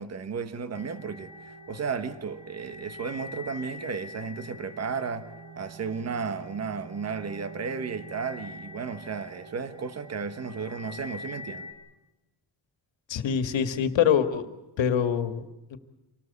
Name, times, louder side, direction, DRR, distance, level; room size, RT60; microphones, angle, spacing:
voice 1, 0.0-5.3 5.6-11.7, right 5 dB, 35° right, 10 dB, 1.3 m, -34 dB
sound 1, 0.7-11.7, left 1 dB, 75° right, 5.1 m, -44 dB
voice 2, 13.1-14.4 14.8-15.8, left 8 dB, 75° left, 9 dB, 1.9 m, -25 dB
26.5 x 18.5 x 8.1 m, 1.0 s
wide cardioid pair, 170°, 45 cm